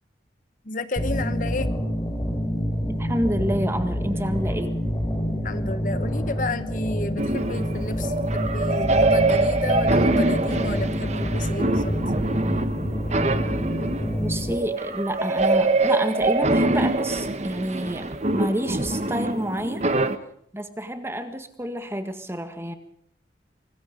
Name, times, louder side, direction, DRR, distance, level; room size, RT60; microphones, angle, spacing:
voice 1, 0.6-1.7 5.4-12.0, left 2 dB, 45° left, 12 dB, 1.1 m, -31 dB
sound 1, 1.0-14.5, equal, 20° left, 4.6 m, -27 dB
voice 2, 2.8-4.8 14.2-19.8 20.5-22.7, equal, 15° right, 8 dB, 1.7 m, -29 dB
sound 2, 7.2-20.2, right 2 dB, 40° right, 1.2 m, -24 dB
25.0 x 20.5 x 5.2 m, 0.66 s
head